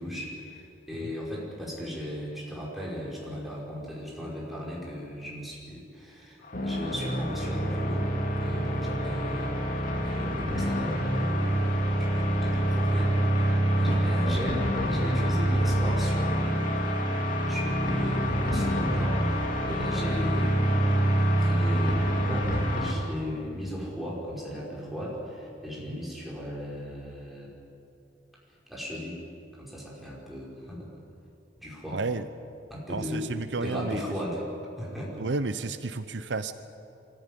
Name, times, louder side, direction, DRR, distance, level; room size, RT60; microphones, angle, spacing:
voice 1, 0.0-8.1 8.4-9.6 10.0-19.4 19.7-21.1 21.4-27.5 28.7-29.2 29.5-30.9 31.6-32.0 32.7-33.3 33.6-34.5 34.8-35.2, equal, ahead, -5 dB, 5.4 m, -37 dB
sound 1, 6.4-22.9, right 1 dB, 50° left, 2.8 m, -26 dB
voice 2, 31.9-32.3 32.9-34.0 35.2-36.5, right 3 dB, 70° right, 12 dB, 0.7 m, -32 dB
24.0 x 14.5 x 9.9 m, 2.7 s
head